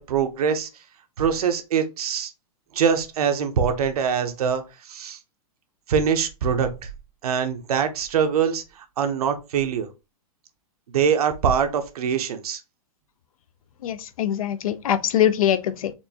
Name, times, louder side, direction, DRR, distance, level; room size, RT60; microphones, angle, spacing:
voice 1, 0.1-0.7 1.2-2.3 2.7-4.6 4.9-5.2 5.9-6.9 7.2-9.9 10.9-12.6, right 7 dB, 75° right, 0.8 m, -23 dB
voice 2, 13.8-15.9, left 10 dB, 65° left, 0.5 m, -23 dB
4.3 x 2.6 x 2.7 m
hypercardioid pair, 170°, 19 cm